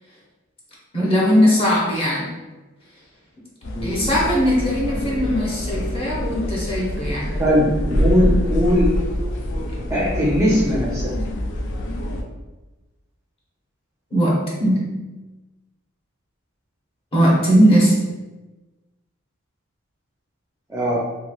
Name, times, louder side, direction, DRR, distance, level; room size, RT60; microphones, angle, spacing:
voice 1, 0.9-2.3 3.8-7.3 14.1-14.9 17.1-18.0, equal, 25° left, -5 dB, 0.8 m, -19 dB
sound 1, 3.6-12.2, equal, 55° left, 0.4 m, -25 dB
voice 2, 3.7-4.2 7.4-8.9 9.9-11.1 20.7-21.0, equal, 15° right, -6 dB, 0.4 m, -20 dB
3.0 x 2.7 x 2.3 m, 1.1 s
head